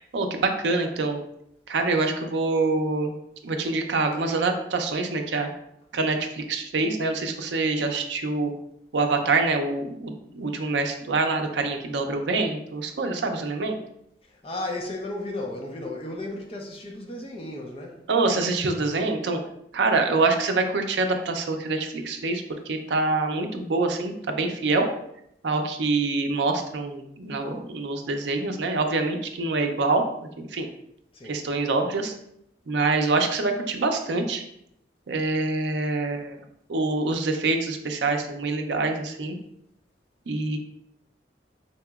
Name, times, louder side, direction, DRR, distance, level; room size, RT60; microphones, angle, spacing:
voice 1, 0.1-1.2 1.7-3.1 3.4-5.5 5.9-8.5 8.9-13.8 18.1-19.4 19.7-24.9 25.4-30.0 30.4-30.7 31.2-32.1 32.7-34.4 35.1-36.4 36.7-39.4 40.3-40.6, right 3 dB, 75° right, 0.5 m, -25 dB
voice 2, 14.2-18.0 31.1-31.5, left 2 dB, 30° left, 0.5 m, -34 dB
4.1 x 2.8 x 2.3 m
head